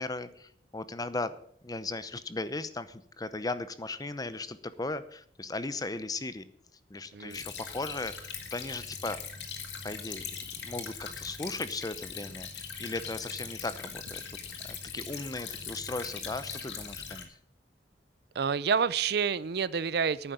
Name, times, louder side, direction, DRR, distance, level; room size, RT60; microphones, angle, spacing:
voice 1, 0.0-1.4 1.6-6.4 6.9-9.2 9.8-10.3 10.6-14.2 14.6-17.3, left 2 dB, 20° left, 13 dB, 0.7 m, -37 dB
Stream / Trickle dribble, 7.3-17.2, left 6 dB, 85° left, 2.0 m, -41 dB
voice 2, 18.3-20.3, right 6 dB, 65° right, 18 dB, 0.5 m, -28 dB
11.5 x 9.1 x 6.9 m, 0.62 s
head